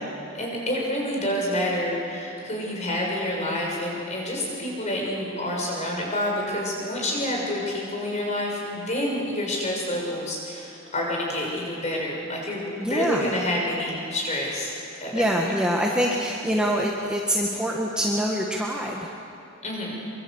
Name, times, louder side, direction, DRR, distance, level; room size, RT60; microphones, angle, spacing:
voice 1, 0.3-14.7 15.0-15.5 19.6-20.0, left 1 dB, 30° left, -1 dB, 6.5 m, -28 dB
voice 2, 12.8-13.4 14.9-19.1, equal, 5° right, -2 dB, 1.6 m, -25 dB
25.5 x 24.5 x 8.1 m, 2.6 s
head